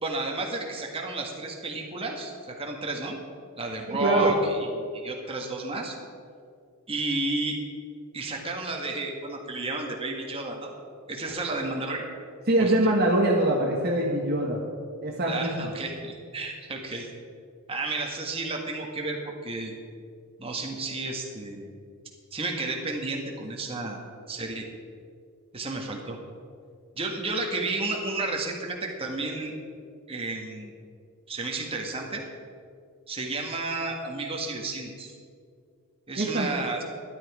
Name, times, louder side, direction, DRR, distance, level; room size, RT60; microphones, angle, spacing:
voice 1, 0.0-3.2 3.6-6.0 6.9-7.6 8.1-10.7 11.1-12.1 12.6-12.8 15.3-17.1 17.7-19.7 20.4-21.7 22.3-24.0 24.3-24.7 25.5-26.2 26.9-29.5 30.1-30.7 31.3-32.2 33.1-35.1 36.1-36.8, right 2 dB, 25° right, 0 dB, 1.6 m, -32 dB
voice 2, 3.9-4.3 12.5-14.6 15.0-15.6 36.2-36.5, right 1 dB, 45° right, -1 dB, 1.2 m, -23 dB
12.5 x 10.5 x 4.9 m, 2.3 s
head